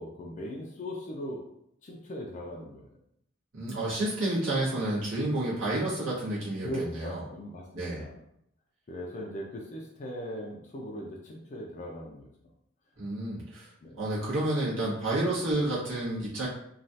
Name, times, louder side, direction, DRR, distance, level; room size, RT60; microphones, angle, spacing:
voice 1, 0.0-1.4 1.8-3.0 6.6-8.2 8.9-12.3 13.8-14.0, equal, 35° left, -1 dB, 0.4 m, -39 dB
voice 2, 3.5-7.2 7.7-8.0 13.0-16.5, right 1 dB, 70° right, -7 dB, 1.3 m, -30 dB
3.1 x 2.3 x 2.7 m, 0.74 s
head